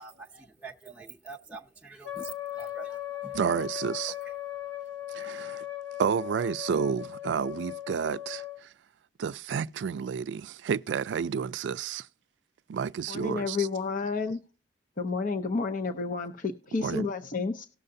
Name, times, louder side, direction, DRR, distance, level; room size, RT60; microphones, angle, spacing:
voice 1, 0.0-3.4 4.0-4.3, right 4 dB, 5° right, 0.6 m, -46 dB
Wind instrument woodwind instrument, 2.0-8.6, left 13 dB, 85° left, 1.4 m, -38 dB
voice 2, 3.3-4.1 5.1-5.6 6.0-8.7 9.2-12.1 12.7-13.7 16.8-17.1, right 7 dB, 75° right, 0.3 m, -30 dB
voice 3, 13.1-14.4 15.0-17.7, left 4 dB, 50° left, 0.6 m, -30 dB
18.5 x 6.6 x 2.6 m
head